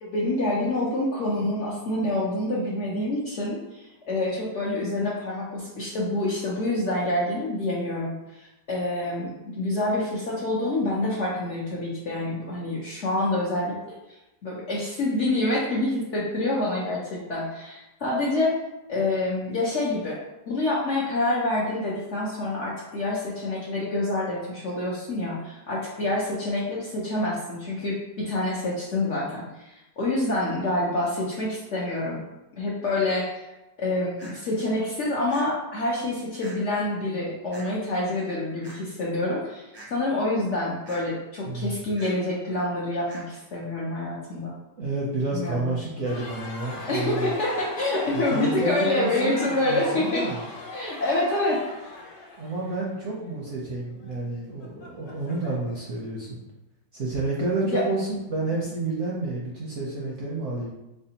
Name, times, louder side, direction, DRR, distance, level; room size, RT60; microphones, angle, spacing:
voice 1, 0.0-8.2 8.7-13.8 14.4-18.5 18.9-20.2 20.5-32.2 32.6-33.4 33.8-44.6 45.3-45.8 46.9-50.3 50.7-51.6 57.6-57.8, left 2 dB, 60° left, -5 dB, 0.8 m, -27 dB
sound 1, 34.2-34.3 35.3-35.4 36.4-36.6 37.5-37.7 38.6-38.8 39.7-39.9 40.8-41.0 42.0-42.1 43.1-43.2, right 2 dB, 35° right, 0.4 m, -44 dB
voice 2, 41.5-41.8 44.8-47.3 48.1-50.4 52.4-56.4 56.9-60.7, right 2 dB, 60° right, -5 dB, 0.8 m, -30 dB
sound 2, 46.0-56.0, left 2 dB, 90° left, 1.4 m, -39 dB
3.7 x 3.3 x 2.8 m, 0.95 s
omnidirectional pair, 1.8 m